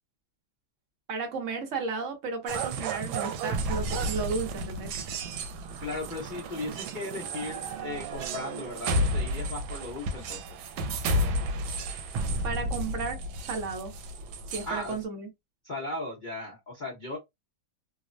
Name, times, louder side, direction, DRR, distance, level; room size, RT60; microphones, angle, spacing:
voice 1, 1.1-4.9 12.4-13.9 14.5-15.3, right 4 dB, 60° right, 0.8 m, -33 dB
sound 1, 2.5-15.0, right 1 dB, 80° right, 1.3 m, -32 dB
voice 2, 5.8-10.5 14.6-15.0 15.6-17.2, left 2 dB, 70° left, 0.4 m, -37 dB
3.2 x 2.0 x 2.5 m
omnidirectional pair, 2.2 m